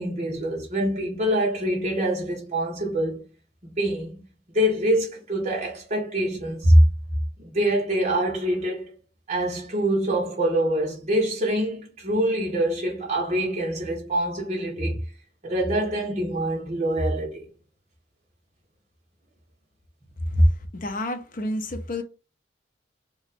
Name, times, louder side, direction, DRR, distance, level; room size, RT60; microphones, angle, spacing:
voice 1, 0.0-3.2 3.6-4.1 4.5-6.8 7.4-8.9 9.3-15.0 15.4-17.5 20.3-20.4, right 1 dB, 40° right, 1.2 m, -24 dB
voice 2, 20.7-22.0, left 1 dB, 45° left, 0.7 m, -28 dB
3.0 x 2.4 x 4.1 m
head